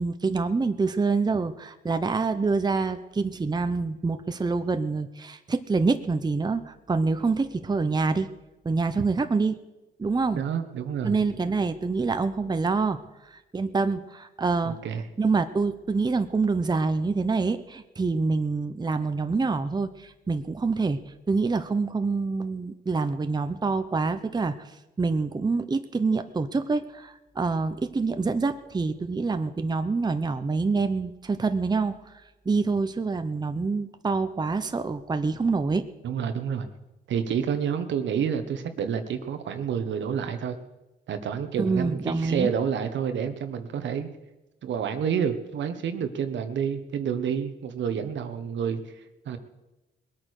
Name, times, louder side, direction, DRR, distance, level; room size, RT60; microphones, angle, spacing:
voice 1, 0.0-8.3 8.6-9.5 10.0-10.4 11.0-13.0 13.5-14.8 15.2-21.0 21.3-24.5 25.0-32.0 32.5-35.9 41.6-42.5, right 4 dB, 20° right, 9 dB, 0.9 m, -26 dB
voice 2, 10.3-11.2 14.6-15.0 36.0-36.7 37.1-40.6 41.1-44.1 44.6-48.8 49.2-49.4, right 7 dB, 70° right, 9 dB, 1.4 m, -29 dB
20.5 x 8.8 x 6.6 m, 1.0 s
cardioid pair, 90°, 20 cm